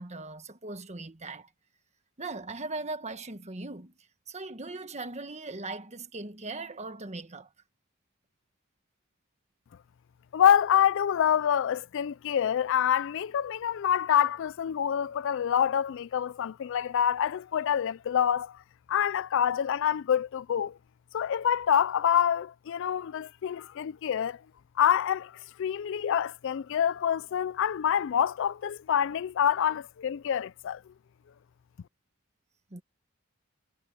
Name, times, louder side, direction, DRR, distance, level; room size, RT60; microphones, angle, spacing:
voice 1, 0.0-1.5 2.2-3.9 4.3-7.5 32.7-32.8, right 3 dB, 30° right, 1.5 m, -39 dB
voice 2, 10.3-18.6 18.9-20.8 21.1-24.4 24.8-30.8, left 9 dB, 60° left, 0.3 m, -26 dB
head